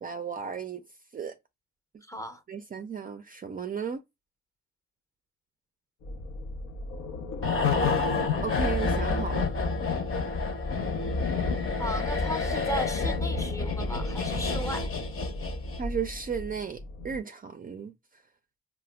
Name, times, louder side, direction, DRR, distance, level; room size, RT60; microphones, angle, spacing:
voice 1, 0.0-0.8 1.1-1.4 1.9-2.0 2.5-4.0 8.4-9.5 15.8-17.9, right 6 dB, 30° right, 0.4 m, -34 dB
voice 2, 2.0-2.4 11.8-14.9, right 1 dB, 10° left, 0.6 m, -36 dB
sound 1, 6.0-17.2, left 2 dB, 85° left, 0.7 m, -39 dB
sound 2, 7.4-16.0 16.2-16.4, left 4 dB, 45° left, 0.8 m, -28 dB
4.7 x 2.1 x 2.2 m
cardioid pair, 90°, 30 cm